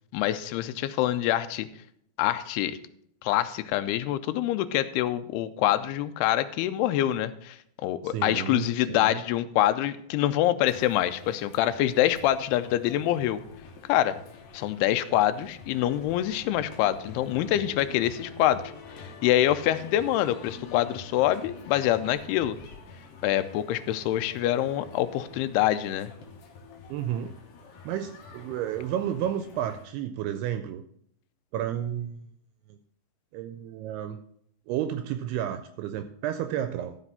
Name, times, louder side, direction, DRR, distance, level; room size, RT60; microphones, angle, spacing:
voice 1, 0.1-1.7 2.2-2.8 3.2-13.4 13.9-14.2 14.5-18.7 19.2-22.6 23.2-26.1, left 13 dB, 80° left, 11 dB, 2.5 m, -25 dB
voice 2, 8.0-9.2 26.9-27.3 27.9-30.8 31.5-32.3 32.7-32.8 33.3-34.2 34.7-37.0, right 10 dB, 80° right, 9 dB, 2.4 m, -31 dB
sound 1, 10.6-29.8, left 4 dB, 65° left, 2.7 m, -47 dB
13.5 x 5.2 x 5.6 m, 0.68 s
omnidirectional pair, 4.9 m